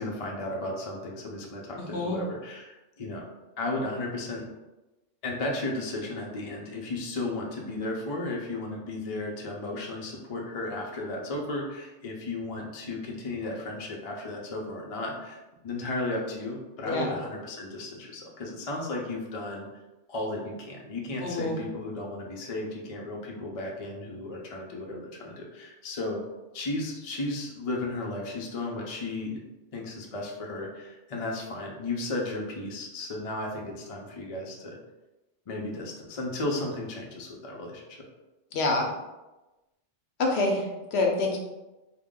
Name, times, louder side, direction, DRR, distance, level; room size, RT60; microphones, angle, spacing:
voice 1, 0.0-3.3 3.6-4.5 5.2-19.6 20.1-26.2 26.5-29.4 29.7-34.8 35.5-38.0, left 2 dB, 40° left, -1 dB, 0.5 m, -34 dB
voice 2, 1.8-2.2 16.8-17.1 21.2-21.6 38.5-38.9 40.2-41.4, left 2 dB, 70° left, 1 dB, 0.9 m, -27 dB
3.7 x 2.2 x 3.6 m, 1.1 s
omnidirectional pair, 1.2 m